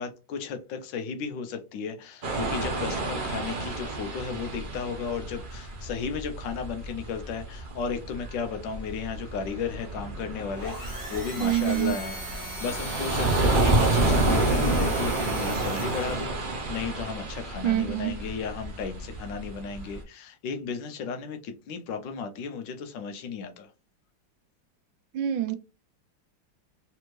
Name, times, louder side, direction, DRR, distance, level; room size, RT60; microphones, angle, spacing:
voice 1, 0.0-12.2 12.6-23.7, left 6 dB, 80° left, 1.3 m, -34 dB
sound 1, 2.2-20.0, right 2 dB, 70° right, 0.4 m, -29 dB
sound 2, 10.5-16.4, equal, 10° right, 1.1 m, -38 dB
voice 2, 11.4-11.9 17.6-18.2 25.1-25.5, right 12 dB, 85° right, 1.4 m, -26 dB
3.4 x 3.4 x 3.1 m
omnidirectional pair, 2.0 m